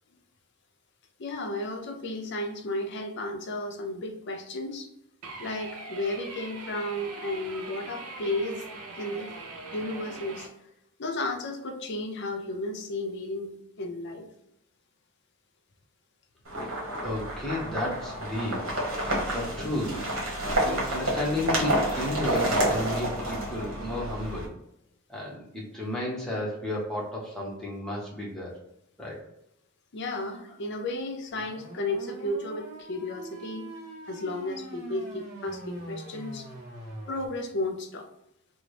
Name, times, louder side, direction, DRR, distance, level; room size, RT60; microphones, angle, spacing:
voice 1, 1.2-4.9 5.4-8.7 8.9-9.4 9.7-10.5 11.0-13.5 13.8-14.3 29.9-33.7 34.1-36.5 37.1-38.1, left 2 dB, 50° left, 4 dB, 0.5 m, -33 dB
sound 1, 5.2-10.5, right 3 dB, 85° right, 0.5 m, -42 dB
sound 2, 16.4-24.4, right 1 dB, 60° right, 1.0 m, -29 dB
voice 2, 16.6-20.1 20.6-24.5 25.1-28.5 29.0-29.2, left 1 dB, ahead, -5 dB, 0.7 m, -33 dB
sound 3, 31.3-37.3, right 2 dB, 15° right, 1.3 m, -43 dB
3.9 x 2.0 x 3.2 m, 0.81 s
head